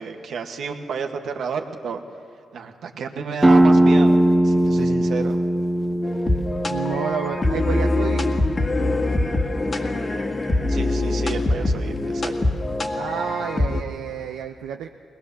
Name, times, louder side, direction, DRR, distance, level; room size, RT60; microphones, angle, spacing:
voice 1, 0.0-2.0 2.5-4.2 4.4-5.4 10.7-12.3, right 5 dB, 70° right, 4 dB, 1.7 m, -31 dB
sound 1, 3.4-8.8, right 1 dB, 15° right, 1.2 m, -20 dB
sound 2, 6.0-13.8, left 2 dB, 40° left, 2.0 m, -23 dB
voice 2, 6.7-8.2 12.9-14.9, right 9 dB, 85° right, 3 dB, 0.7 m, -30 dB
21.5 x 19.5 x 7.1 m, 2.5 s
supercardioid pair, 50°, 0 cm